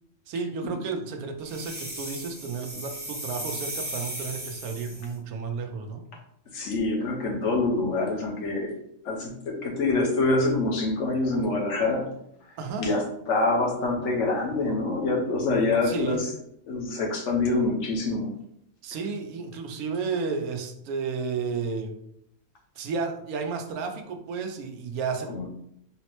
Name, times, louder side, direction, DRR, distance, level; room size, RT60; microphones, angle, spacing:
voice 1, 0.3-6.0 12.6-12.9 15.8-16.2 18.8-22.0 22.8-25.5, right 5 dB, 85° right, 5 dB, 1.1 m, -32 dB
sound 1, 1.5-5.1, right 1 dB, 10° right, 0.4 m, -36 dB
voice 2, 6.5-8.8 9.0-12.1 12.8-16.3 16.7-18.3 25.3-25.5, left 2 dB, 60° left, 0 dB, 1.0 m, -26 dB
3.8 x 2.1 x 2.9 m, 0.74 s
omnidirectional pair, 1.5 m